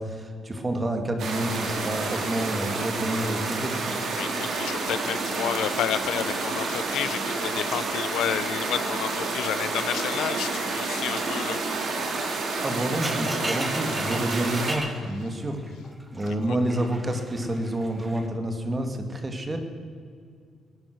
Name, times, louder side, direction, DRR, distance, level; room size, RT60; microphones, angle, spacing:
voice 1, 0.0-3.8 12.6-15.6 16.1-19.6, right 1 dB, 25° right, 5 dB, 2.3 m, -28 dB
sound 1, 1.2-14.8, right 3 dB, 60° right, 3.0 m, -29 dB
voice 2, 4.2-11.6 16.3-16.6, left 11 dB, 80° left, 15 dB, 0.7 m, -31 dB
sound 2, 5.4-7.8 8.1-8.5 8.9-18.3, right 1 dB, 10° right, 1.8 m, -39 dB
19.5 x 10.5 x 6.3 m, 2.2 s
cardioid pair, 90°, 0 cm